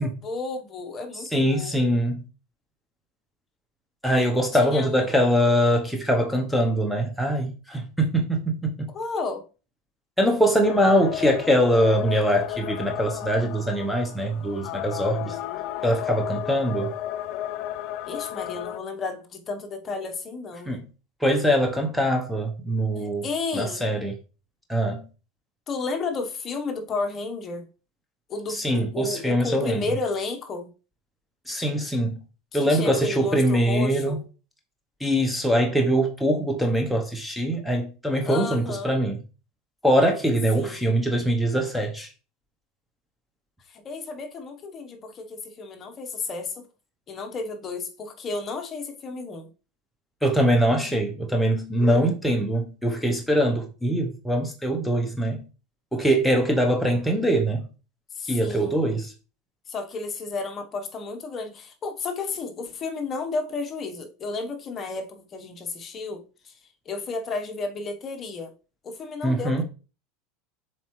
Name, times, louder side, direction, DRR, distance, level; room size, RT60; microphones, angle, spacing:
voice 1, 0.0-2.0 4.5-5.1 8.9-9.4 18.1-20.7 23.0-23.9 25.7-27.6 28.3-30.7 32.5-34.2 38.2-39.0 40.5-41.0 43.7-46.7 47.1-49.5 58.1-58.8 59.7-66.6 66.8-68.5 68.8-69.6, left 3 dB, 25° left, 1.0 m, -32 dB
voice 2, 1.2-2.2 4.0-8.9 10.2-15.4 15.8-16.9 20.7-20.8 21.2-23.2 23.5-24.1 24.7-25.0 28.5-29.8 31.5-32.2 32.5-34.2 35.0-39.2 39.8-42.1 50.2-55.4 55.9-57.7 58.2-59.1 69.2-69.6, equal, ahead, 0.7 m, -23 dB
sound 1, 10.6-18.8, left 12 dB, 50° left, 0.3 m, -33 dB
7.1 x 4.4 x 3.1 m
supercardioid pair, 140°, 0 cm